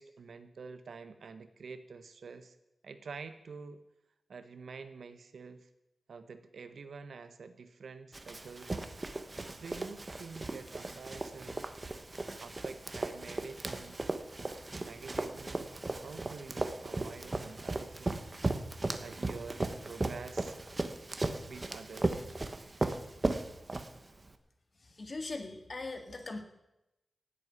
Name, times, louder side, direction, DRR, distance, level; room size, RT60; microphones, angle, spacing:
voice 1, 0.0-2.6 2.8-3.8 4.3-5.7 6.1-8.7 9.4-11.7 12.4-14.0 14.8-15.7 16.0-18.3 19.0-20.6 21.5-22.2, right 5 dB, 70° right, 10 dB, 1.2 m, -47 dB
Run, 8.1-24.3, right 2 dB, 25° right, 1.1 m, -37 dB
voice 2, 25.0-26.4, left 3 dB, 40° left, 5 dB, 1.9 m, -40 dB
17.0 x 8.0 x 9.6 m, 0.92 s
wide cardioid pair, 160°, 0 cm